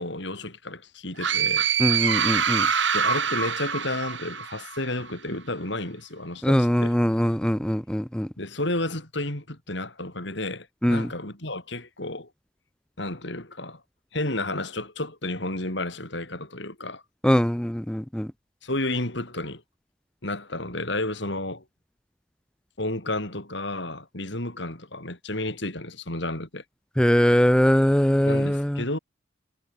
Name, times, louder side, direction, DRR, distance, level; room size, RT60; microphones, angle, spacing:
voice 1, 0.0-1.7 2.9-6.9 8.4-12.3 13.0-13.8 14.1-17.0 18.6-19.6 20.2-21.6 22.8-26.6 28.3-29.0, left 2 dB, 60° left, 4.9 m, -31 dB
sound 1, 1.2-4.9, right 7 dB, 65° right, 7.0 m, -25 dB
voice 2, 1.8-2.7 6.4-8.3 10.8-11.1 17.2-18.3 27.0-28.8, equal, 5° left, 0.7 m, -22 dB
head